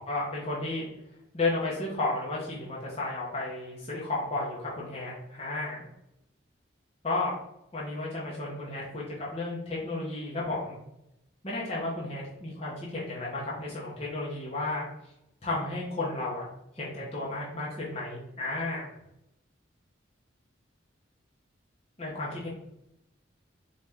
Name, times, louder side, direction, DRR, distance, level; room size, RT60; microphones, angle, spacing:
voice 1, 0.1-0.9 1.3-5.8 7.0-7.3 7.7-10.8 11.4-14.8 15.4-16.4 16.7-18.8 22.0-22.5, left 2 dB, 30° left, -6 dB, 0.9 m, -33 dB
4.1 x 3.1 x 3.5 m, 0.84 s
head